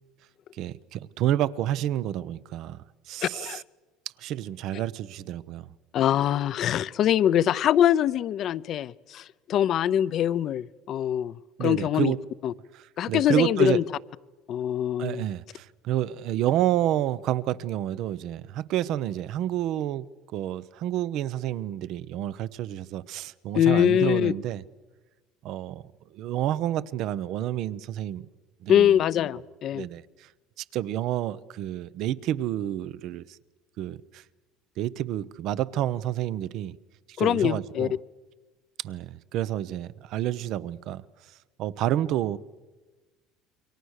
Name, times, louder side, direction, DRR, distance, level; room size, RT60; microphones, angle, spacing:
voice 1, 0.5-3.6 4.2-5.7 11.6-12.2 12.7-13.8 15.0-24.6 25.4-25.8 26.1-28.3 28.6-29.0 29.7-30.3 30.6-33.4 33.8-34.2 34.8-36.8 37.1-37.9 38.8-41.0 41.6-42.4, right 12 dB, 60° right, 0.8 m, -29 dB
voice 2, 3.2-3.6 5.9-12.1 12.4-12.5 13.0-13.8 14.5-15.3 23.5-24.3 28.7-29.8 37.2-37.9, left 10 dB, 50° left, 0.7 m, -23 dB
28.0 x 23.5 x 6.6 m
supercardioid pair, 100°, 0 cm